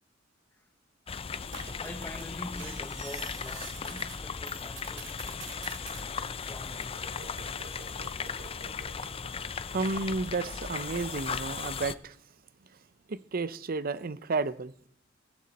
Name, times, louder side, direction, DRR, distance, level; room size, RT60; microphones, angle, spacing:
sound 1, 1.1-11.9, left 6 dB, 30° left, 0.5 m, -37 dB
sound 2, 1.3-4.2 4.5-6.0 6.7-9.7 10.4-11.9, right 5 dB, 70° right, 2.6 m, -48 dB
voice 1, 1.8-5.8 6.5-7.0, left 1 dB, 10° left, 1.0 m, -45 dB
voice 2, 9.3-12.2 13.1-14.7, right 3 dB, 50° right, 0.6 m, -32 dB
16.5 x 14.0 x 4.2 m
head